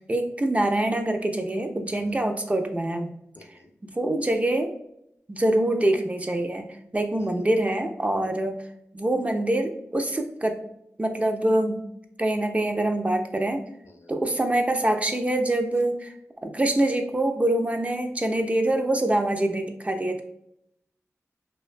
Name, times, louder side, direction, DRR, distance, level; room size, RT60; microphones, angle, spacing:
voice 1, 0.1-3.1 3.8-4.7 5.3-8.6 8.9-10.6 11.0-11.9 12.2-13.6 14.1-16.1 16.4-20.2, right 1 dB, 25° right, 5 dB, 0.3 m, -25 dB
voice 2, 1.9-2.2 3.4-3.7 7.2-7.5 8.2-8.3 13.8-14.1, left 2 dB, 55° left, 4 dB, 0.4 m, -52 dB
2.4 x 2.2 x 2.4 m, 0.77 s
cardioid pair, 45°, 5 cm